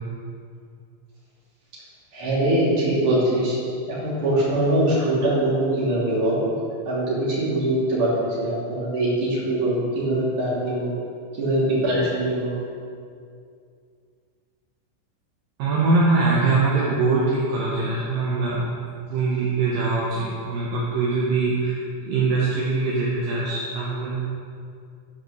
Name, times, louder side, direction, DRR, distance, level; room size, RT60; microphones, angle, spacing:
voice 1, 2.1-3.6 3.9-6.4 6.8-10.9 11.4-12.6, right 1 dB, 35° right, -8 dB, 3.1 m, -22 dB
voice 2, 15.6-18.6 19.1-21.7 22.0-24.2, right 3 dB, 70° right, -6 dB, 2.2 m, -22 dB
12.0 x 5.1 x 6.3 m, 2.3 s
omnidirectional pair, 5.7 m